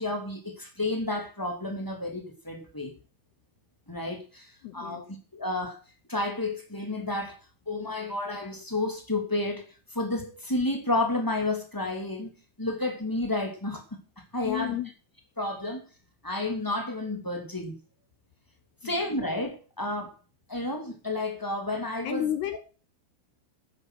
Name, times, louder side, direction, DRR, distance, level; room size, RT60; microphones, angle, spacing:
voice 1, 0.0-2.9 3.9-5.0 5.3-5.8 6.1-7.4 7.6-9.6 9.9-12.3 12.6-13.8 14.3-14.7 15.4-15.8 16.2-17.7 18.8-20.1 20.5-22.2, left 2 dB, 15° left, 0.8 m, -31 dB
voice 2, 4.6-5.0 14.4-14.9 18.8-19.0 22.0-22.6, left 11 dB, 70° left, 2.6 m, -32 dB
11.5 x 10.5 x 6.4 m
omnidirectional pair, 5.8 m